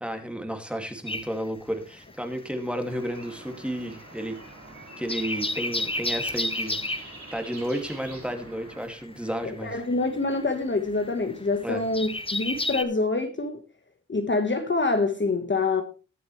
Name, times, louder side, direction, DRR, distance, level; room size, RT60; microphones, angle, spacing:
voice 1, 0.0-4.4 5.0-9.8 11.6-11.9, equal, 5° right, 2.3 m, -32 dB
sound 1, 1.1-2.5 2.7-12.8, left 2 dB, 15° left, 1.0 m, -32 dB
sound 2, 2.9-8.8, right 2 dB, 45° right, 5.9 m, -46 dB
voice 2, 9.4-13.6 14.1-15.8, left 3 dB, 35° left, 1.4 m, -26 dB
20.0 x 7.2 x 3.2 m
wide cardioid pair, 90°, 31 cm